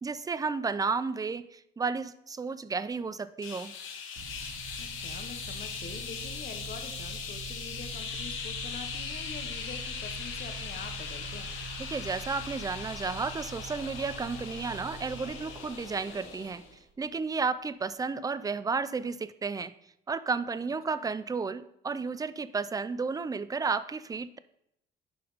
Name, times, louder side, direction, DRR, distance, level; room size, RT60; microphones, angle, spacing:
voice 1, 0.0-3.7 11.9-16.6 17.0-19.7 20.1-24.4, right 4 dB, 20° right, 14 dB, 0.4 m, -32 dB
sound 1, 3.4-16.8, left 6 dB, 80° left, 1.2 m, -40 dB
sound 2, 4.2-17.2, right 5 dB, 65° right, 0.7 m, -45 dB
voice 2, 4.8-11.5 20.9-21.1, left 6 dB, 50° left, 6 dB, 1.0 m, -45 dB
11.0 x 4.2 x 4.0 m, 0.77 s
cardioid pair, 90°, 20 cm